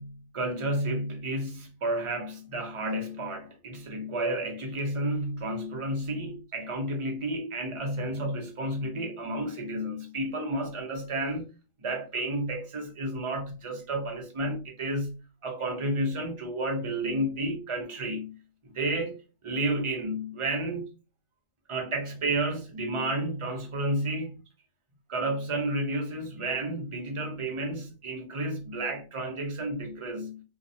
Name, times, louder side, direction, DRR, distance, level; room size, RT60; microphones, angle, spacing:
voice 1, 0.0-11.5 11.8-18.3 18.6-19.2 19.4-20.9 21.7-24.4 25.1-30.4, right 1 dB, 40° right, 0.5 m, -31 dB
2.8 x 2.1 x 2.6 m
omnidirectional pair, 1.2 m